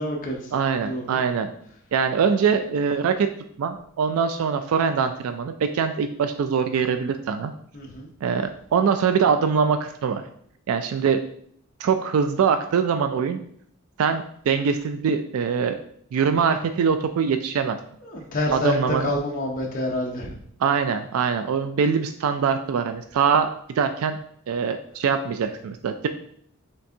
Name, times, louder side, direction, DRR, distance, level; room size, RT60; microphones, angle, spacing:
voice 1, 0.0-0.5 0.8-1.2 7.7-8.1 18.0-20.4, left 1 dB, 40° left, -2 dB, 0.6 m, -28 dB
voice 2, 0.5-1.5 1.9-3.3 3.6-7.5 8.2-10.2 10.7-11.2 11.8-13.4 14.0-15.8 16.1-17.8 18.5-19.1 20.6-23.5 23.8-24.2 24.5-26.1, right 6 dB, 85° right, 8 dB, 0.3 m, -23 dB
5.8 x 3.4 x 2.7 m, 0.65 s
head